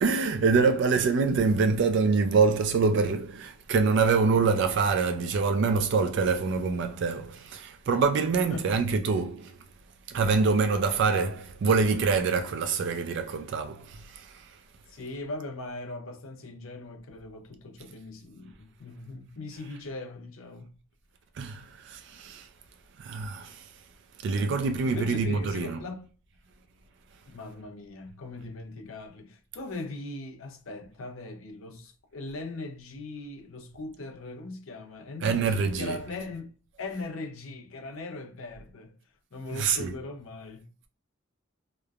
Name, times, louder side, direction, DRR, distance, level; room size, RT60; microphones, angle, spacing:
voice 1, 0.0-9.6 10.1-14.6 21.3-22.5 23.0-23.8 24.2-25.8 35.2-36.0 39.5-40.0, right 4 dB, 60° right, 0.3 m, -25 dB
voice 2, 14.9-20.8 24.8-26.1 27.2-36.5 36.8-39.0 39.3-40.7, left 2 dB, 85° left, 0.6 m, -40 dB
3.0 x 2.0 x 2.3 m
head